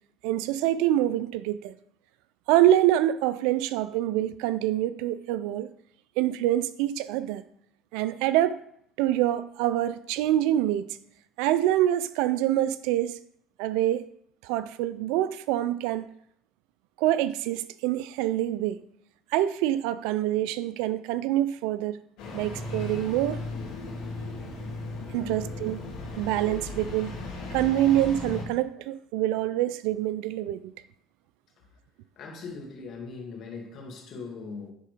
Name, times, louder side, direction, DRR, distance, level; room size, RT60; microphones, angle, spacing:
voice 1, 0.2-1.7 2.5-5.7 6.2-7.4 7.9-8.6 9.0-11.0 11.4-13.2 13.6-14.1 14.4-16.1 17.0-18.8 19.3-22.0 22.3-23.4 25.1-25.8 26.2-27.2 27.5-30.7, right 13 dB, 80° right, 0.4 m, -25 dB
Engine starting, 22.2-28.4, left 2 dB, 80° left, 3.5 m, -36 dB
voice 2, 32.2-34.7, left 4 dB, 55° left, 2.3 m, -40 dB
9.9 x 3.8 x 5.0 m
supercardioid pair, 85°, 0 cm